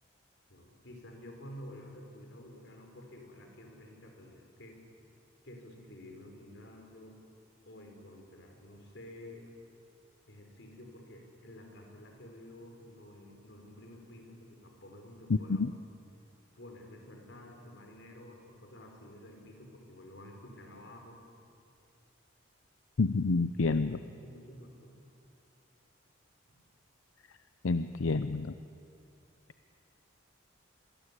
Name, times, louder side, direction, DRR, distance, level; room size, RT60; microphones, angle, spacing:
voice 1, 0.5-4.9 5.4-7.2 7.7-9.5 10.3-15.6 16.5-21.2 23.7-25.0 26.5-26.6, left 1 dB, 65° left, 3 dB, 4.6 m, -51 dB
voice 2, 15.3-15.7 23.0-24.0 27.6-28.5, left 3 dB, 85° left, 12 dB, 0.6 m, -28 dB
26.5 x 22.0 x 8.4 m, 2.6 s
head